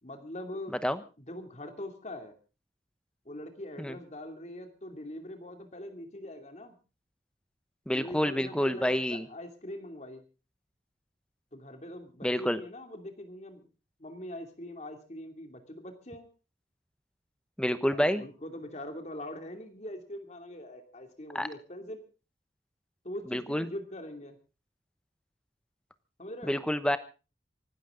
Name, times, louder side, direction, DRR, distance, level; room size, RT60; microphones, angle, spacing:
voice 1, 0.0-0.8 1.2-2.3 3.2-6.8 7.9-10.2 11.5-13.6 14.0-16.3 17.9-22.0 23.0-24.4 26.2-26.6, left 1 dB, 40° left, 5 dB, 2.8 m, -42 dB
voice 2, 7.9-9.3 12.2-12.6 17.6-18.2 21.3-21.5 23.3-23.7 26.4-27.0, equal, 5° left, 12 dB, 1.0 m, -28 dB
25.0 x 13.0 x 3.8 m, 0.33 s
head